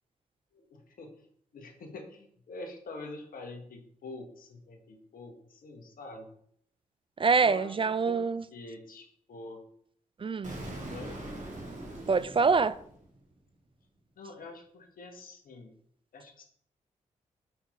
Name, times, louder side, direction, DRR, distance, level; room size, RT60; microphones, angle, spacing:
voice 1, 0.5-1.1 1.5-6.3 7.4-7.8 8.0-8.2 8.5-9.6 10.9-11.2 14.2-15.7 16.1-16.4, left 2 dB, 70° left, 1.5 m, -45 dB
voice 2, 7.2-8.4 10.2-10.6 12.1-12.7, right 4 dB, 35° right, 0.4 m, -25 dB
Explosion, 10.4-13.3, right 1 dB, 55° right, 2.4 m, -42 dB
6.4 x 4.5 x 5.0 m
supercardioid pair, 40°, 15 cm